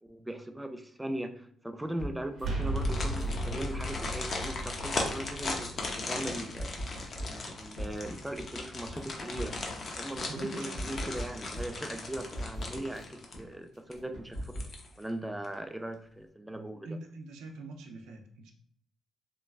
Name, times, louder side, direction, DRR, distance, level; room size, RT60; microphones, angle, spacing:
voice 1, 0.0-1.5 1.7-5.7 6.1-6.7 7.2-9.6 9.9-14.5 15.0-17.0, right 1 dB, 5° right, 6 dB, 0.3 m, -39 dB
sound 1, 2.0-3.4 3.8-5.8 6.2-8.4 8.8-10.4 10.7-13.0 13.3-13.4 13.7-14.7, equal, 85° left, 0.9 m, -40 dB
sound 2, 2.4-8.1, right 1 dB, 55° right, 0.7 m, -36 dB
sound 3, 2.6-13.6 13.9-14.0 14.4-15.1 15.4-15.5, left 3 dB, 45° left, 0.6 m, -38 dB
voice 2, 10.3-10.8 16.8-18.5, right 2 dB, 90° right, 4 dB, 0.5 m, -43 dB
3.0 x 2.3 x 2.4 m, 0.62 s
cardioid pair, 90°, 0 cm